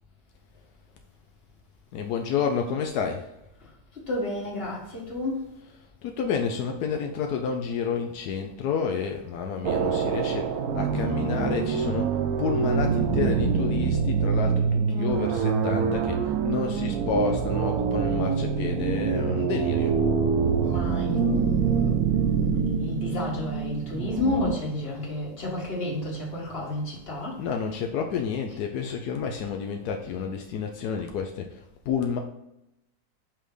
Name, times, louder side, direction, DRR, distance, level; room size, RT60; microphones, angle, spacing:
voice 1, 1.9-3.3 5.6-20.0 27.3-32.2, left 6 dB, 85° left, 1.2 m, -30 dB
voice 2, 4.1-5.5 20.6-27.4, left 2 dB, 40° left, 1.9 m, -31 dB
sound 1, 9.6-24.6, right 6 dB, 75° right, 1.1 m, -25 dB
5.8 x 3.5 x 4.9 m
omnidirectional pair, 1.6 m